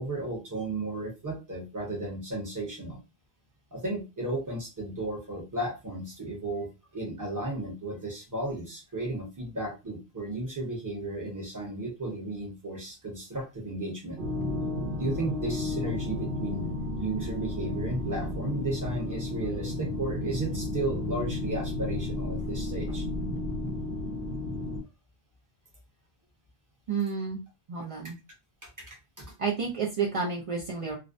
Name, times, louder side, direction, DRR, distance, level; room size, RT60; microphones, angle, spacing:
voice 1, 0.0-3.0 3.7-6.7 6.9-14.2 15.0-16.7 17.0-23.1 28.6-29.3, right 2 dB, 20° right, -1 dB, 0.7 m, -34 dB
sound 1, 14.2-24.8, left 2 dB, 70° right, 0.9 m, -33 dB
voice 2, 26.9-27.4 27.7-28.2 29.4-31.0, right 5 dB, 50° right, -2 dB, 0.4 m, -30 dB
2.4 x 2.1 x 2.5 m, 0.26 s
omnidirectional pair, 1.1 m